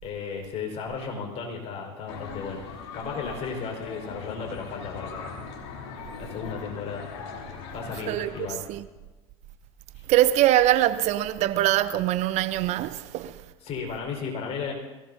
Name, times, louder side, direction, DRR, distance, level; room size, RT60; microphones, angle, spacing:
voice 1, 0.0-2.6 2.9-5.4 6.2-7.1 7.7-8.6 9.9-10.0 13.6-14.7, left 5 dB, 45° left, 5.0 m, -34 dB
sound 1, 2.1-8.5, left 5 dB, 65° left, 3.3 m, -40 dB
voice 2, 10.1-13.4, right 14 dB, 50° right, 0.7 m, -23 dB
22.5 x 17.5 x 2.8 m
hypercardioid pair, 90°, 15 cm